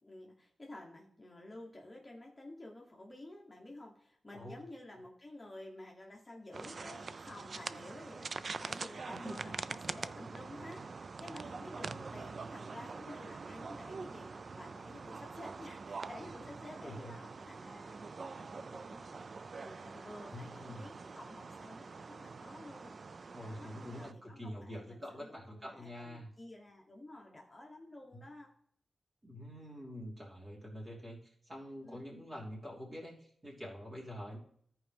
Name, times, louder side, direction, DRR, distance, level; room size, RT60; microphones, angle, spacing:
voice 1, 0.0-23.0 23.4-28.5 31.8-32.0, left 1 dB, 20° left, -1 dB, 1.2 m, -52 dB
sound 1, 6.5-24.1, right 4 dB, 50° right, 0.3 m, -45 dB
voice 2, 16.8-17.1 18.2-18.8 20.3-20.8 23.3-26.3 28.1-28.2 29.2-34.4, equal, 30° right, -4 dB, 3.1 m, -46 dB
14.0 x 4.8 x 3.5 m, 0.63 s
wide cardioid pair, 105°, 0 cm